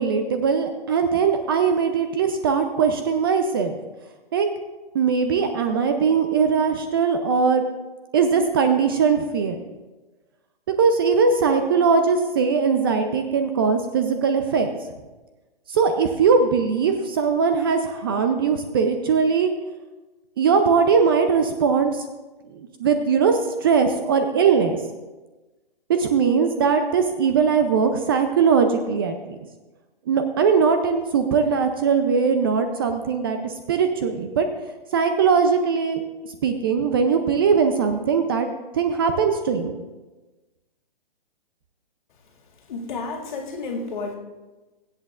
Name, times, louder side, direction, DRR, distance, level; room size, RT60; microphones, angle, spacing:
voice 1, 0.0-3.8 4.3-4.5 4.9-7.6 8.1-9.6 10.8-14.7 15.7-19.5 20.4-22.0 22.5-24.8 25.9-29.4 30.1-34.5 34.9-36.0 36.4-38.5 38.7-39.8, right 5 dB, 25° right, 7 dB, 0.5 m, -20 dB
voice 2, 42.7-44.2, left 3 dB, 55° left, 0 dB, 2.1 m, -31 dB
23.0 x 8.2 x 2.5 m, 1.2 s
hypercardioid pair, 155°, 30 cm